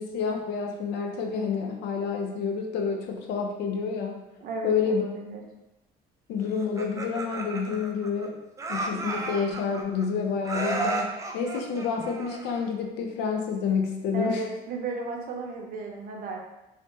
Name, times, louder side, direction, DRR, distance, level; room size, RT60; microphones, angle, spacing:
voice 1, 0.0-4.2 4.6-5.0 6.3-8.4 8.7-14.4, left 5 dB, 80° left, 2 dB, 0.5 m, -29 dB
voice 2, 4.4-5.4 14.1-16.4, right 3 dB, 60° right, 1 dB, 0.6 m, -34 dB
Laughter, 6.6-8.3 8.6-10.1 10.4-12.7, right 3 dB, 20° right, 0.3 m, -33 dB
3.2 x 2.1 x 3.0 m, 0.96 s
cardioid pair, 110°, 17 cm